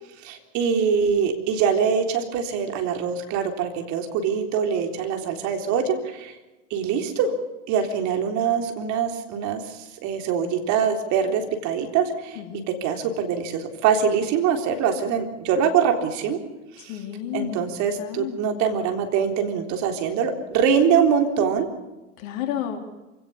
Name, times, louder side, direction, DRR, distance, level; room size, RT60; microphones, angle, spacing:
voice 1, 0.2-6.3 6.7-7.3 7.7-12.4 12.7-16.4 16.8-17.0 17.3-21.7, right 7 dB, 45° right, 5 dB, 3.8 m, -23 dB
voice 2, 16.9-17.7 18.0-18.5 22.2-22.8, left 10 dB, 55° left, 4 dB, 3.9 m, -31 dB
27.0 x 17.5 x 7.1 m, 1.1 s
hypercardioid pair, 95°, 40 cm